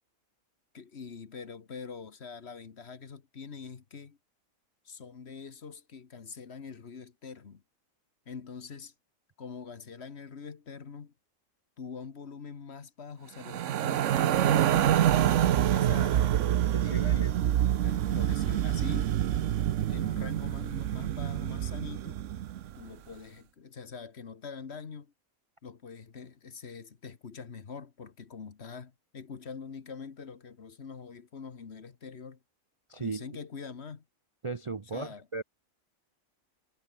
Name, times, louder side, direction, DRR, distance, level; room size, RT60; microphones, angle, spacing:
voice 1, 0.7-4.2 4.8-7.6 8.3-8.9 9.4-11.1 11.8-16.4 16.8-17.3 17.8-19.1 19.9-22.2 22.7-25.1 25.6-32.4 33.0-34.0 34.9-35.3, left 5 dB, 50° left, 1.6 m, -44 dB
sound 1, 13.4-22.7, right 11 dB, 65° right, 1.0 m, -26 dB
voice 2, 16.7-17.3 32.9-33.3 34.4-35.4, right 4 dB, 30° right, 0.6 m, -36 dB
omnidirectional pair, 1.4 m